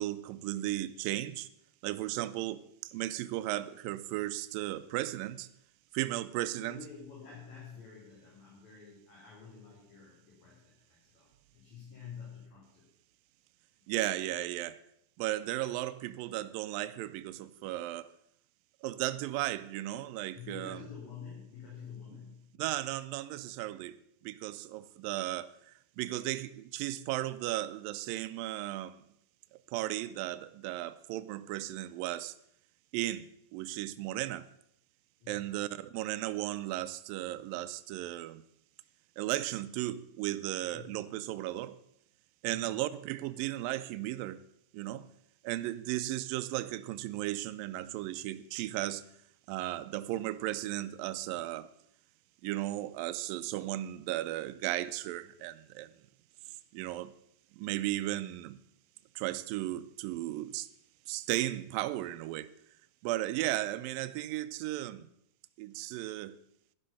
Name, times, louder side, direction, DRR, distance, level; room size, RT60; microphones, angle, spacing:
voice 1, 0.0-1.5 1.8-5.5 5.9-6.8 13.9-14.8 15.2-18.1 18.8-20.8 22.6-29.0 29.7-32.4 32.9-34.5 35.3-38.4 39.2-41.8 42.4-44.4 44.7-45.1 45.4-49.0 49.5-51.7 52.4-55.9 56.7-57.1 57.5-58.6 59.2-60.7 61.1-62.5 63.0-65.1 65.6-66.4, right 15 dB, 80° right, 2.3 m, -35 dB
voice 2, 6.6-11.3 11.5-12.9 20.3-22.6 35.2-35.6 40.7-41.0 42.4-42.8, left 6 dB, 55° left, 4.6 m, -49 dB
12.0 x 11.5 x 5.6 m
omnidirectional pair, 4.1 m